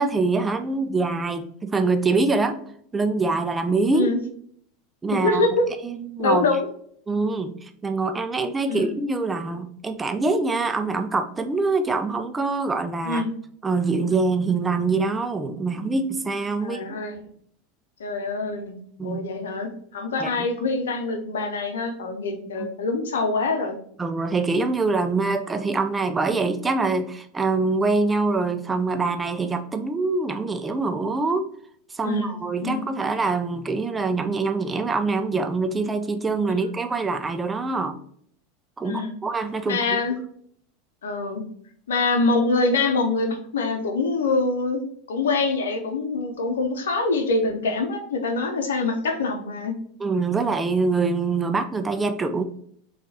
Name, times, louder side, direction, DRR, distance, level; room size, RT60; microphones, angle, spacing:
voice 1, 0.0-2.6 2.9-4.1 5.0-5.5 5.8-6.5 7.1-13.2 13.6-16.8 19.0-19.2 20.2-20.5 22.6-22.7 24.0-31.5 31.9-38.0 38.8-39.8 50.0-52.4, right 3 dB, 15° right, 8 dB, 0.5 m, -24 dB
voice 2, 5.1-5.8 6.2-6.7 8.7-8.9 13.0-13.3 16.6-17.2 18.0-18.8 19.0-23.8 32.0-32.9 38.9-39.2 39.7-40.2 41.0-41.4 41.9-44.8 45.1-49.7, left 3 dB, 80° left, 5 dB, 0.7 m, -25 dB
3.8 x 2.4 x 4.1 m, 0.63 s
hypercardioid pair, 90°, 0 cm